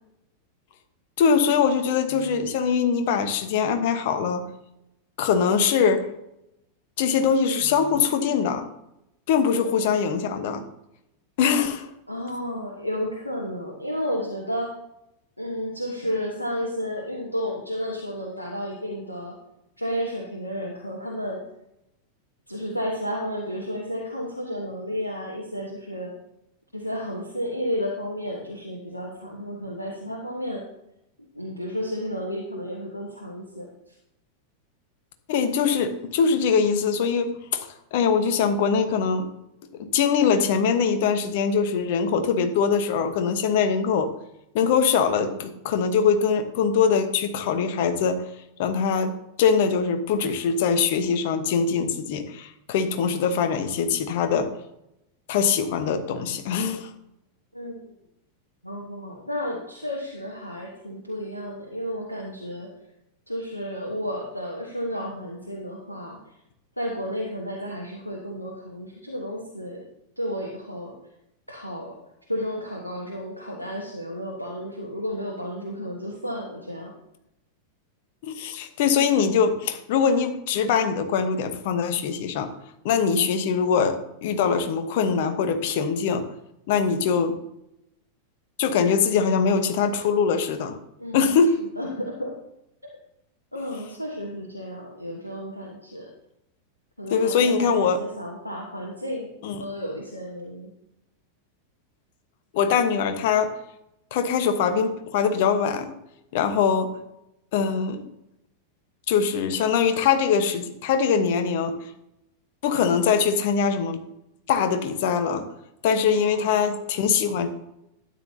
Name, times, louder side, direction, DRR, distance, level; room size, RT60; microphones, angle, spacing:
voice 1, 1.2-4.5 5.2-6.1 7.0-8.7 9.3-10.6 11.4-11.9 35.3-39.3 39.7-44.1 44.5-48.3 48.6-54.5 55.3-56.9 78.2-82.5 82.8-86.3 86.7-87.4 88.6-90.8 91.1-91.6 97.1-98.0 99.4-99.6 102.5-103.6 104.1-105.9 106.3-107.0 107.5-108.0 109.1-111.8 112.6-114.0 114.5-115.5 115.8-117.5, left 6 dB, 50° left, 8 dB, 1.2 m, -22 dB
voice 2, 9.7-10.2 12.1-14.7 15.4-19.4 19.8-21.4 22.5-26.1 26.7-30.6 31.3-33.7 57.5-57.9 58.6-62.7 63.3-66.2 66.8-69.8 70.2-71.0 71.5-72.0 72.3-76.9 91.0-92.4 92.8-92.9 93.5-96.1 97.0-99.3 99.6-100.7 116.2-116.8, equal, 90° left, -1 dB, 1.3 m, -32 dB
12.5 x 9.3 x 2.8 m, 0.83 s
figure-of-eight pair, 90°, 0 cm